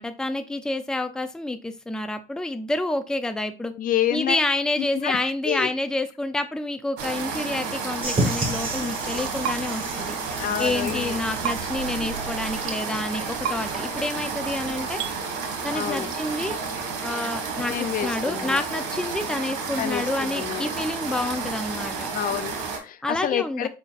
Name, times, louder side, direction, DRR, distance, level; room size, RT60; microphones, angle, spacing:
voice 1, 0.0-3.7 4.1-10.1 10.6-15.0 15.6-16.6 17.0-22.1 23.0-23.7, left 2 dB, 5° left, 0.5 m, -28 dB
voice 2, 3.8-4.4 5.0-5.2 5.4-5.7 10.4-11.2 15.7-16.1 17.7-18.6 19.8-20.7 22.1-23.7, left 11 dB, 55° left, 0.5 m, -28 dB
sound 1, 7.0-22.8, right 4 dB, 90° right, 1.6 m, -31 dB
sound 2, 8.0-15.2, right 2 dB, 35° right, 1.8 m, -33 dB
sound 3, 9.4-9.6 11.4-11.6 13.4-13.6 15.0-15.1, right 8 dB, 70° right, 0.8 m, -27 dB
5.1 x 4.0 x 2.5 m
cardioid pair, 110°, 17 cm